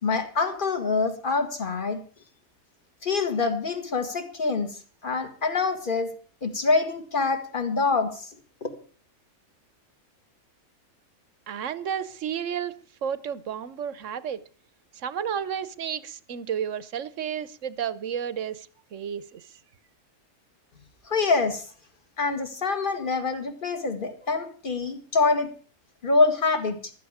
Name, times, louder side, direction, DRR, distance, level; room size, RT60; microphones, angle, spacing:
voice 1, 0.0-2.0 3.0-6.1 6.4-8.3 8.6-8.7 21.1-21.7 22.2-25.5 26.0-26.9, left 4 dB, 35° left, 2.0 m, -25 dB
voice 2, 11.5-14.4 15.0-19.4, right 8 dB, 60° right, 1.1 m, -32 dB
15.0 x 12.5 x 4.9 m
omnidirectional pair, 1.6 m